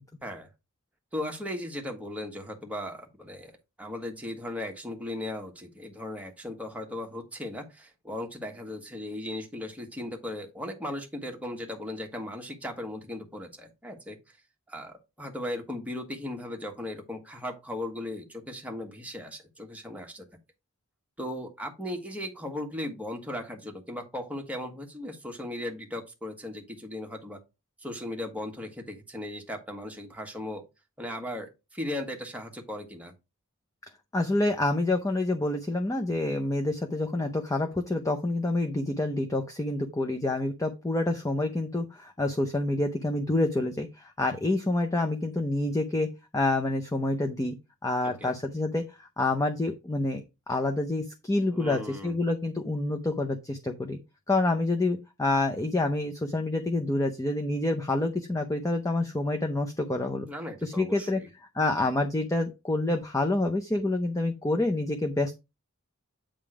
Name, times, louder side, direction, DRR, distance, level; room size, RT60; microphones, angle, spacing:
voice 1, 1.1-3.5 3.8-14.2 14.7-20.2 21.2-27.4 27.8-30.6 31.0-33.1 48.0-48.3 51.5-52.1 60.3-61.3, left 1 dB, 5° right, 1.4 m, -37 dB
voice 2, 34.1-46.1 46.3-47.6 47.8-54.0 54.3-60.3 60.6-61.2 61.5-65.3, left 2 dB, 15° left, 0.6 m, -27 dB
8.7 x 3.6 x 4.8 m
head